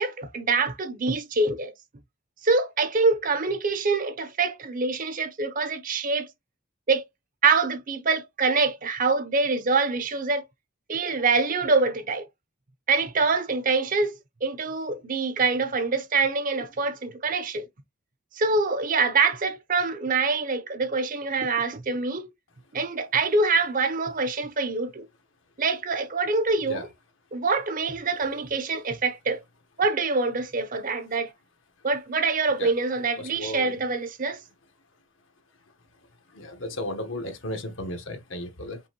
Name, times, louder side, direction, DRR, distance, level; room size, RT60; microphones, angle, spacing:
voice 1, 0.0-1.7 2.4-6.3 6.9-7.1 7.4-10.5 10.9-12.3 12.9-14.2 14.4-17.7 18.3-22.3 22.7-25.1 25.6-26.9 27.3-29.4 29.8-31.3 31.8-34.4, right 4 dB, 40° right, 0.6 m, -25 dB
voice 2, 33.2-33.8 36.3-38.8, left 1 dB, 70° left, 1.1 m, -34 dB
5.4 x 2.6 x 2.9 m
head